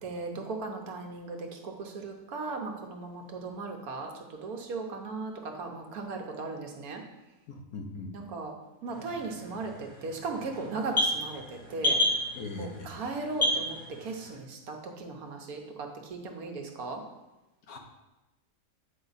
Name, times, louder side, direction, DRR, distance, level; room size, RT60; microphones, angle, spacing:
voice 1, 0.0-7.0 8.1-8.5 8.8-12.0 12.6-17.0, right 3 dB, 75° right, 3 dB, 1.4 m, -37 dB
voice 2, 7.5-8.1 12.3-12.9 17.7-17.8, left 3 dB, 70° left, 3 dB, 1.4 m, -39 dB
sound 1, 8.9-14.4, left 1 dB, 5° left, 0.9 m, -32 dB
8.4 x 4.6 x 4.0 m, 1.0 s
omnidirectional pair, 1.6 m